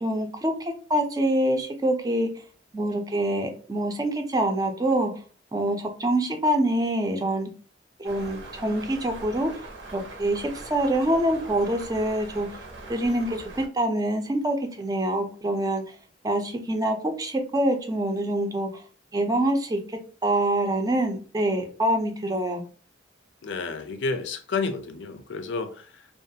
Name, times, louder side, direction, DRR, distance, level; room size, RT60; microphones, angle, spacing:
voice 1, 0.0-2.3 2.7-5.1 5.5-7.5 8.0-9.5 9.9-12.6 12.9-15.9 16.2-18.8 19.1-22.6, right 1 dB, 20° right, 0.4 m, -25 dB
sound 1, 8.0-13.7, right 2 dB, 80° right, 0.7 m, -42 dB
voice 2, 23.4-26.1, left 4 dB, 80° left, 0.4 m, -31 dB
2.4 x 2.3 x 2.7 m
head